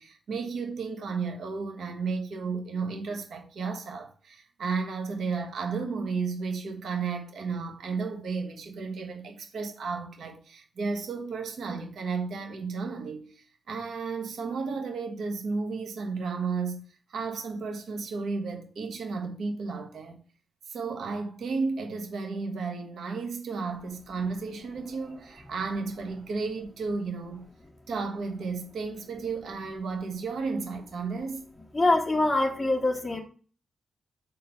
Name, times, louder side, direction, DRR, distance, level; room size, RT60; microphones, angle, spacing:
voice 1, 0.0-20.2 20.6-27.5 27.9-31.5, right 4 dB, 70° right, 1.5 m, -33 dB
voice 2, 31.7-33.2, left 2 dB, 10° left, 1.3 m, -24 dB
7.1 x 4.5 x 5.8 m
wide cardioid pair, 135°, 0 cm